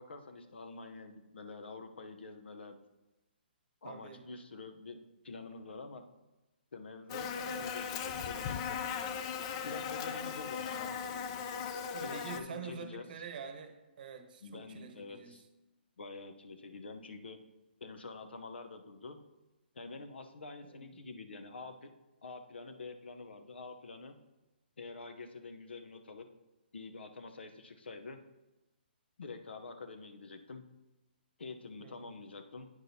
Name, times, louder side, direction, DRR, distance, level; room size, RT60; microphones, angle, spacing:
voice 1, 0.0-2.8 3.8-5.0 5.2-6.0 6.7-8.8 9.6-11.0 12.0-13.1 14.4-15.4 16.0-17.4 17.8-19.2 19.7-21.9 22.2-24.2 24.8-26.3 26.7-28.2 29.2-30.7 31.4-32.7, left 3 dB, 80° left, 7 dB, 0.7 m, -47 dB
voice 2, 3.8-4.2 7.4-7.7 11.9-15.4 20.6-21.1 31.8-32.1, right 6 dB, 55° right, 7 dB, 0.8 m, -47 dB
Buzz, 7.1-12.4, left 7 dB, 30° left, 0.4 m, -38 dB
8.9 x 6.2 x 2.7 m, 1.0 s
hypercardioid pair, 145°, 6 cm